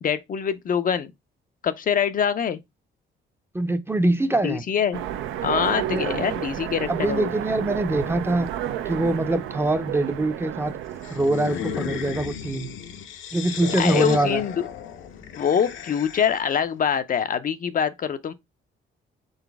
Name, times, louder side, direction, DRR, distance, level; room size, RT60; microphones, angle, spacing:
voice 1, 0.0-1.1 1.6-2.6 4.4-5.0 5.4-7.3 13.8-14.7 15.4-18.3, left 8 dB, 45° left, 0.5 m, -24 dB
voice 2, 3.5-4.6 5.9-6.2 6.9-8.5 8.9-10.7 11.1-12.7 13.3-14.4, right 2 dB, 10° right, 0.5 m, -24 dB
Train, 4.9-11.9, right 11 dB, 85° right, 0.5 m, -31 dB
sound 1, 11.0-16.5, left 8 dB, 80° left, 0.8 m, -34 dB
4.0 x 4.0 x 3.4 m
cardioid pair, 90°, 20 cm